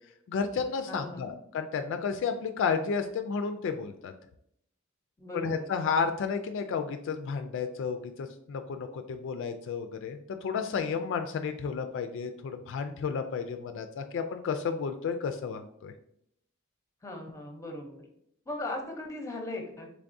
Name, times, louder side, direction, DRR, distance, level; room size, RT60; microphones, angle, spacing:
voice 1, 0.3-4.1 5.3-15.9, left 5 dB, 65° left, 7 dB, 0.3 m, -32 dB
voice 2, 0.9-1.3 5.2-5.6 17.0-18.0 18.5-20.0, left 2 dB, 15° left, 2 dB, 0.6 m, -38 dB
3.5 x 3.4 x 2.5 m, 0.73 s
head